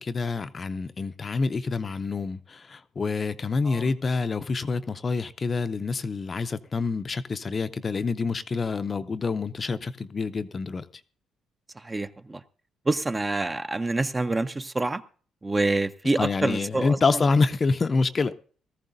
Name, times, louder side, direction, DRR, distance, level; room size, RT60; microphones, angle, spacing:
voice 1, 0.0-10.8 16.2-18.3, left 4 dB, 30° left, 0.5 m, -27 dB
voice 2, 11.8-12.4 12.9-15.0 15.4-17.2, right 2 dB, 20° right, 0.5 m, -27 dB
18.5 x 14.0 x 2.6 m
cardioid pair, 115°, 0 cm